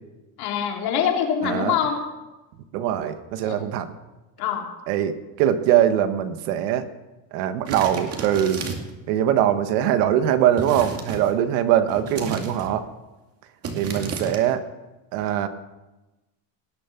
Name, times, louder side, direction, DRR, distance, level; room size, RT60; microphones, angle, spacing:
voice 1, 0.4-2.0 3.4-3.6 4.4-4.7, left 8 dB, 55° left, 1 dB, 3.2 m, -24 dB
voice 2, 1.4-1.8 2.7-3.9 4.9-6.9 7.3-8.7 9.1-12.9 13.7-14.6 15.1-15.5, right 10 dB, 80° right, 9 dB, 1.6 m, -22 dB
sound 1, 7.7-9.0 10.6-11.3 11.9-12.8 13.6-14.4, right 4 dB, 35° right, 2.3 m, -33 dB
18.5 x 10.5 x 6.0 m, 1.1 s
cardioid pair, 150°, 45 cm